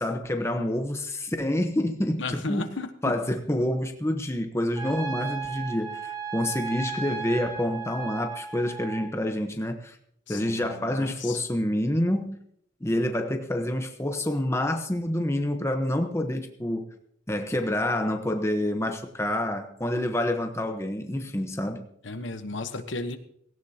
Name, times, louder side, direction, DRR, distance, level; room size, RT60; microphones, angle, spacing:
voice 1, 0.0-2.7 3.0-10.0 10.3-12.4 12.8-16.8 17.3-21.8, left 1 dB, 15° left, 5 dB, 1.0 m, -28 dB
voice 2, 2.2-3.1 10.3-11.4 22.0-23.2, left 3 dB, 65° left, 9 dB, 1.1 m, -34 dB
Trumpet, 4.7-9.1, right 6 dB, 20° right, 5.6 m, -35 dB
17.0 x 16.5 x 2.9 m, 0.67 s
head